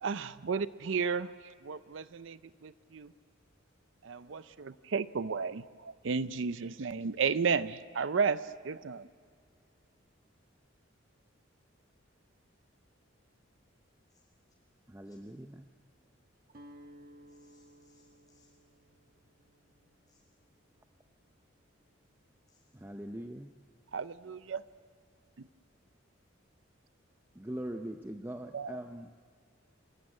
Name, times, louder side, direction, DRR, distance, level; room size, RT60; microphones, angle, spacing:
voice 1, 0.0-1.3 1.6-3.1 4.0-9.1 23.9-24.6 28.5-28.8, right 5 dB, 70° right, 15 dB, 0.5 m, -33 dB
voice 2, 4.1-4.8 14.1-14.3 15.0-15.2 17.3-18.5 20.1-20.2 22.5-22.6, left 3 dB, 20° left, -3 dB, 7.4 m, -70 dB
voice 3, 14.9-15.7 22.7-23.5 27.4-29.2, right 1 dB, 10° right, 6 dB, 0.6 m, -42 dB
Guitar, 16.5-22.5, equal, 50° right, 1.4 m, -58 dB
27.0 x 15.0 x 9.6 m, 2.1 s
head